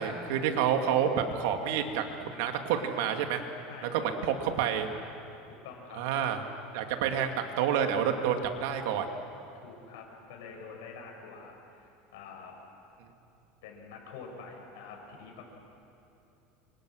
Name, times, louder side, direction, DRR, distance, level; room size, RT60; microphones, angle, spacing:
voice 1, 0.0-3.4 3.9-4.9 6.0-6.4 6.7-9.1, right 8 dB, 75° right, 5 dB, 2.5 m, -29 dB
voice 2, 3.7-4.3 4.8-4.9 5.5-6.0 9.5-12.5 13.6-15.4, left 5 dB, 85° left, 1 dB, 7.2 m, -47 dB
29.0 x 26.0 x 6.6 m, 2.7 s
supercardioid pair, 150°, 0 cm